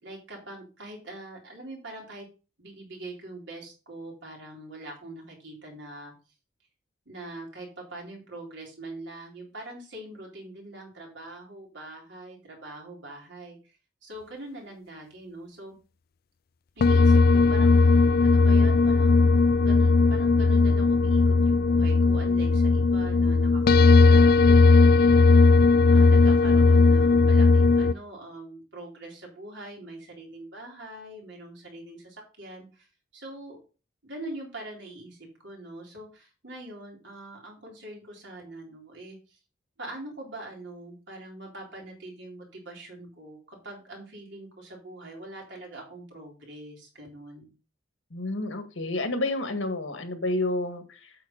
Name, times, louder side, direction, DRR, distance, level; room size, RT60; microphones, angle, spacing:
voice 1, 0.0-2.3 2.6-6.1 7.1-15.8 16.8-17.9 18.2-25.4 25.9-32.9 33.1-33.6 34.0-39.4 39.8-47.5, right 2 dB, 70° right, -1 dB, 4.0 m, -43 dB
sound 1, 16.8-27.9, left 4 dB, 50° left, 0.4 m, -18 dB
voice 2, 48.1-51.1, left 2 dB, 80° left, 7 dB, 1.8 m, -30 dB
8.6 x 6.8 x 4.0 m, 0.33 s
head